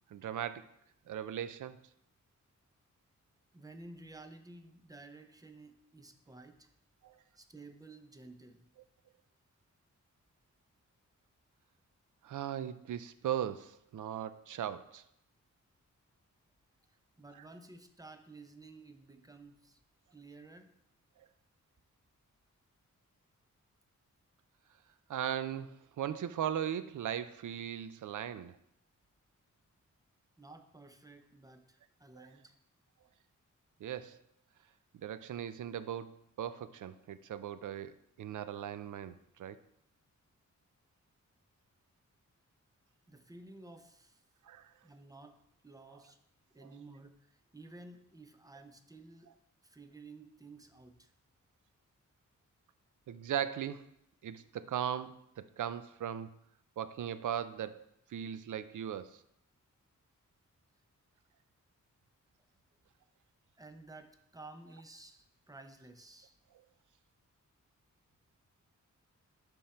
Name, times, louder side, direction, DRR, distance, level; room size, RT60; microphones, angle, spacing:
voice 1, 0.1-0.6 1.1-1.8 7.0-7.1 12.2-15.0 25.1-28.6 32.2-32.3 33.8-34.2 35.0-39.1 39.4-39.6 44.5-44.7 53.1-53.8 54.2-56.4 56.8-57.8 58.1-59.2, right 10 dB, 75° right, 13 dB, 0.5 m, -38 dB
voice 2, 3.5-6.7 7.4-8.7 16.9-19.8 20.1-20.7 30.4-32.5 43.1-44.2 44.8-45.4 45.6-46.2 46.5-49.3 49.6-51.1 63.6-66.4, right 2 dB, 10° right, 7 dB, 0.6 m, -53 dB
11.0 x 3.7 x 4.3 m, 0.75 s
wide cardioid pair, 130°, 31 cm